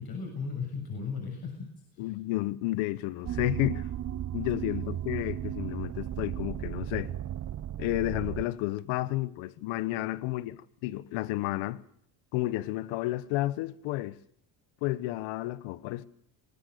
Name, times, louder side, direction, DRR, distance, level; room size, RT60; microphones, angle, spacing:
voice 1, 0.0-2.1, left 5 dB, 50° left, 7.2 m, -36 dB
voice 2, 2.0-3.9 4.3-7.1 7.8-11.8 12.3-14.2 14.8-16.1, left 17 dB, 75° left, 1.3 m, -31 dB
sound 1, 3.2-8.4, right 11 dB, 35° right, 0.9 m, -35 dB
24.0 x 20.0 x 6.8 m
supercardioid pair, 75°, 48 cm